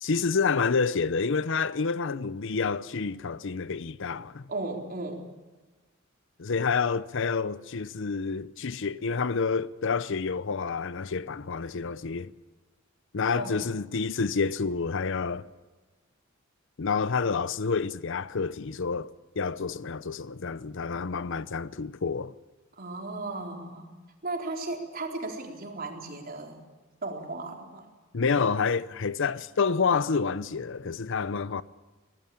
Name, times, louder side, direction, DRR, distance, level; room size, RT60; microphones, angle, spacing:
voice 1, 0.0-4.5 6.4-12.3 13.1-15.5 16.8-22.3 28.1-31.6, left 5 dB, 65° left, 0.7 m, -28 dB
voice 2, 4.5-5.3 13.3-13.6 22.8-23.9 24.2-26.6 27.0-27.9, right 2 dB, 45° right, 4.0 m, -35 dB
24.0 x 19.0 x 8.7 m
head